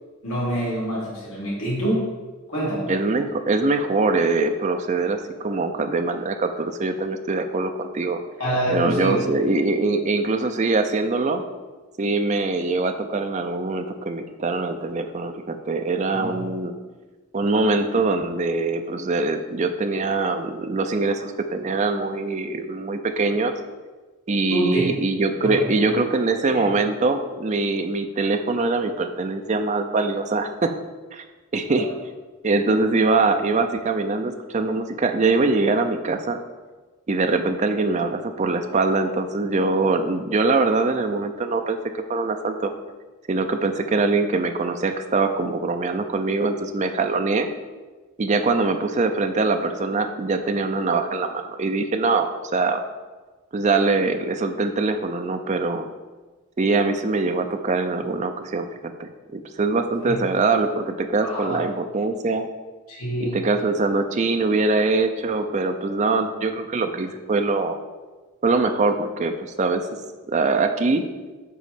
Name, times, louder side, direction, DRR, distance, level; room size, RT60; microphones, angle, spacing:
voice 1, 0.2-2.2 2.5-2.9 8.4-9.3 16.1-16.5 24.5-24.8 25.4-25.9 26.5-26.7 60.1-60.5 61.2-61.6 62.9-63.3, right 1 dB, 70° left, -6 dB, 1.9 m, -26 dB
voice 2, 2.9-8.2 8.7-11.4 12.0-16.7 17.3-23.5 24.3-30.7 31.1-31.2 31.5-31.9 32.4-36.4 37.1-42.7 43.3-47.5 48.2-52.8 53.5-55.9 56.6-62.5 63.2-67.8 68.4-70.0 70.3-71.0, right 3 dB, 35° right, 7 dB, 0.4 m, -23 dB
8.4 x 3.1 x 5.0 m, 1.3 s
head